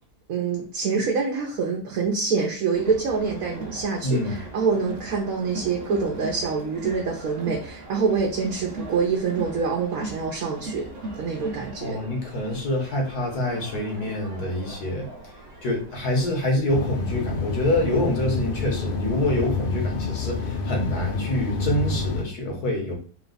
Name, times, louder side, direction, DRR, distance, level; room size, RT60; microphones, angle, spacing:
voice 1, 0.3-10.9 11.1-12.0, right 5 dB, 70° right, -1 dB, 1.2 m, -26 dB
Crowd, 2.7-16.3, right 2 dB, 45° right, 0.8 m, -38 dB
voice 2, 4.0-4.4 11.8-15.1 15.6-22.9, left 1 dB, 80° left, 0 dB, 1.8 m, -26 dB
sound 1, 16.7-22.2, left 3 dB, 50° left, 0.7 m, -28 dB
3.9 x 2.3 x 3.9 m, 0.41 s
omnidirectional pair, 1.6 m